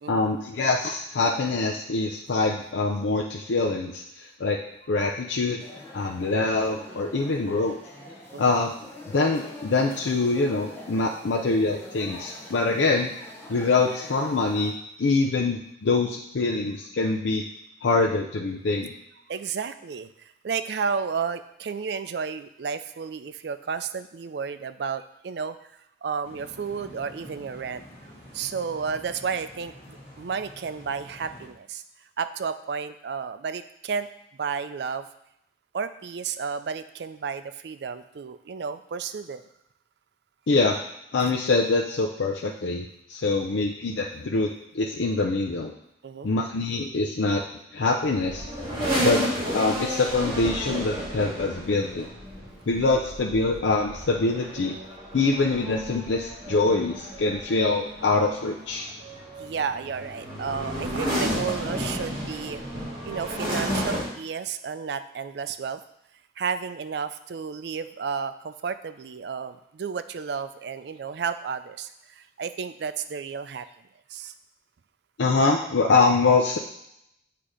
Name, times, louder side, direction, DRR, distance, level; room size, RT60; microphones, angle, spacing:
voice 1, 0.1-4.6 4.9-5.6 5.9-7.8 8.4-8.7 9.1-13.1 13.5-14.7 15.0-17.4 17.8-18.9 40.5-40.8 41.1-44.5 44.7-45.7 46.2-47.4 47.7-48.5 49.0-49.2 49.5-52.1 52.7-54.8 55.1-58.9 75.2-76.6, left 3 dB, 85° left, 0 dB, 0.5 m, -24 dB
sound 1, 5.6-14.7, left 1 dB, 15° left, 0.7 m, -44 dB
voice 2, 19.3-25.6 26.0-27.8 28.3-31.8 32.2-34.1 34.4-35.1 35.7-39.4 46.0-46.3 59.4-62.6 63.0-65.8 66.4-73.7 74.1-74.3, right 6 dB, 65° right, 11 dB, 0.4 m, -32 dB
sound 2, 26.2-31.5, equal, 30° left, 1.6 m, -47 dB
sound 3, 48.0-64.1, equal, 25° right, 2.0 m, -32 dB
8.1 x 2.9 x 4.9 m, 0.79 s
head